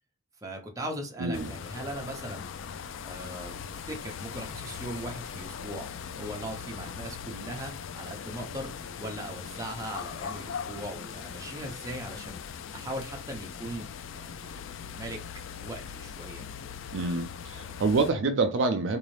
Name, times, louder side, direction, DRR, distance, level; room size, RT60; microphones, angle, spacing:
voice 1, 0.4-2.5 3.0-5.9 6.2-8.7 9.0-12.4 12.7-13.9 14.1-14.6 14.9-16.4, right 1 dB, 15° right, 0.7 m, -39 dB
voice 2, 1.2-1.5 16.9-19.0, right 3 dB, 65° right, 0.4 m, -27 dB
sound 1, 1.3-18.1, left 7 dB, 70° left, 0.4 m, -40 dB
3.9 x 2.6 x 3.2 m
head